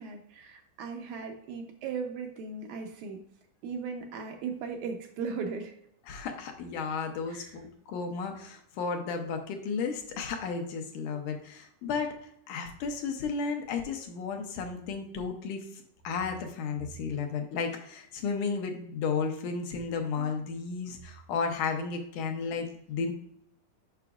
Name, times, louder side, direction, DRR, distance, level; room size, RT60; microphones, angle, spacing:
voice 1, 0.0-3.2 3.6-5.7 7.3-7.6 20.2-20.3, right 5 dB, 80° right, 3 dB, 1.9 m, -37 dB
voice 2, 6.1-12.1 12.5-23.1, left 5 dB, 75° left, 4 dB, 2.3 m, -33 dB
6.9 x 5.7 x 2.4 m, 0.70 s
omnidirectional pair, 3.8 m